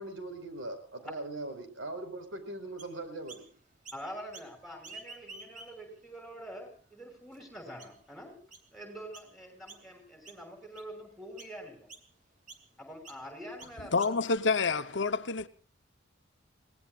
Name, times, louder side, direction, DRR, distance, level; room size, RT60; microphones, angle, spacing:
voice 1, 0.0-3.5, right 2 dB, 80° right, 5.1 m, -40 dB
Chirp tweet, 2.8-3.5 3.8-4.5 4.8-6.0 6.5-6.6 7.3-7.4 7.8-8.1 8.5-8.7 9.1-9.3 9.7-10.0 10.2-10.9 11.4-11.6 11.9-12.1 12.5-12.7 13.0-13.2 13.6-14.4, right 3 dB, 40° right, 2.9 m, -50 dB
voice 2, 3.9-8.4 8.7-11.9 12.8-14.2, equal, ahead, 6.4 m, -45 dB
voice 3, 13.9-15.5, left 4 dB, 65° left, 1.0 m, -28 dB
30.0 x 18.5 x 2.5 m
head